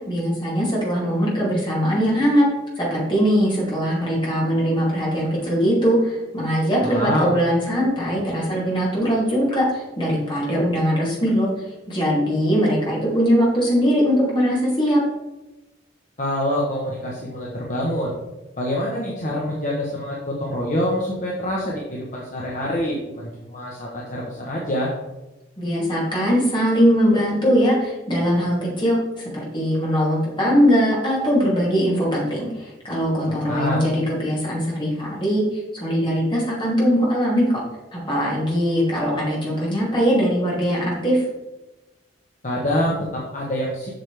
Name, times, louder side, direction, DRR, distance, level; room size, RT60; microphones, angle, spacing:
voice 1, 0.1-2.4 2.8-11.5 11.9-15.0 25.6-37.6 37.9-41.2, equal, 25° left, -5 dB, 2.9 m, -21 dB
voice 2, 6.8-7.4 16.2-18.2 18.6-24.9 33.5-33.8 42.4-43.9, left 1 dB, 45° left, -3 dB, 1.2 m, -26 dB
7.9 x 6.4 x 3.4 m, 1.0 s
head